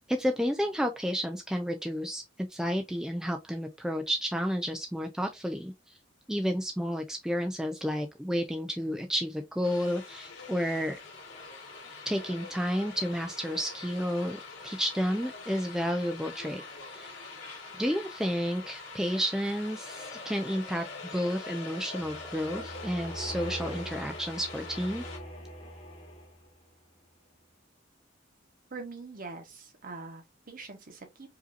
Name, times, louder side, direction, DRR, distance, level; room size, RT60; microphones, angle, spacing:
voice 1, 0.1-6.0 6.3-11.0 12.1-17.1 17.8-20.8 21.1-25.0, equal, 5° right, 0.4 m, -31 dB
sound 1, 9.6-25.2, left 3 dB, 85° left, 2.1 m, -44 dB
sound 2, 22.0-26.6, equal, 30° left, 1.3 m, -42 dB
voice 2, 28.7-31.3, right 3 dB, 45° right, 1.1 m, -43 dB
4.9 x 2.7 x 2.5 m
head